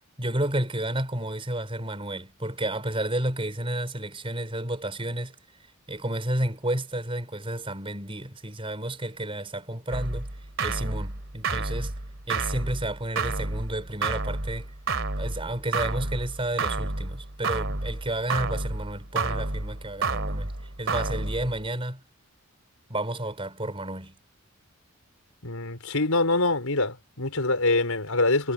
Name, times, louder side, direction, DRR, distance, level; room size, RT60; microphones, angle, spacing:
voice 1, 0.2-5.4 5.9-10.3 10.6-12.0 12.3-14.7 15.2-20.5 20.8-22.0 22.9-24.2, right 1 dB, 25° right, 5.5 m, -31 dB
sound 1, 9.9-21.7, right 3 dB, 60° right, 2.8 m, -30 dB
voice 2, 25.4-28.5, left 2 dB, 85° left, 4.9 m, -24 dB
head